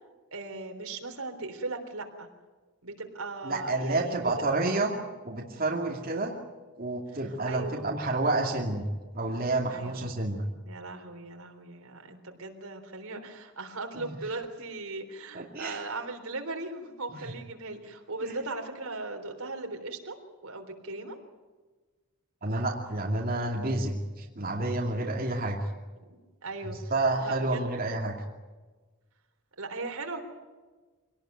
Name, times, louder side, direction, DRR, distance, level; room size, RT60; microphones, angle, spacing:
voice 1, 0.3-2.3 2.8-4.4 6.2-6.3 7.5-7.9 9.7-10.0 10.7-20.2 20.4-21.2 26.4-26.8 27.2-27.7 29.6-30.2, right 3 dB, 75° right, 4 dB, 3.7 m, -38 dB
voice 2, 3.4-6.3 6.8-8.8 9.1-10.4 13.9-14.1 15.3-15.8 17.1-17.2 18.2-18.4 22.4-25.6 26.6-28.1, right 2 dB, 40° right, 0 dB, 2.5 m, -29 dB
25.5 x 18.5 x 9.3 m, 1.3 s
head